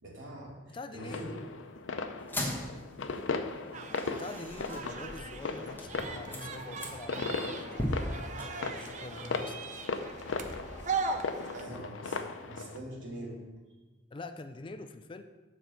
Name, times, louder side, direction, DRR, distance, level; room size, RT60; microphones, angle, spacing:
voice 1, 0.0-1.3 6.3-6.4 11.5-12.2 12.4-13.4, right 1 dB, 90° right, -4 dB, 2.5 m, -43 dB
voice 2, 0.7-1.4 4.1-7.8 8.4-9.8 14.1-15.2, left 3 dB, 25° left, 9 dB, 0.4 m, -45 dB
sound 1, 1.0-12.8, left 4 dB, 90° left, 0.6 m, -38 dB
sound 2, 2.2-11.8, left 1 dB, 10° left, 1.2 m, -41 dB
sound 3, 3.7-11.6, right 4 dB, 40° right, 0.5 m, -39 dB
7.3 x 4.5 x 6.7 m, 1.2 s
head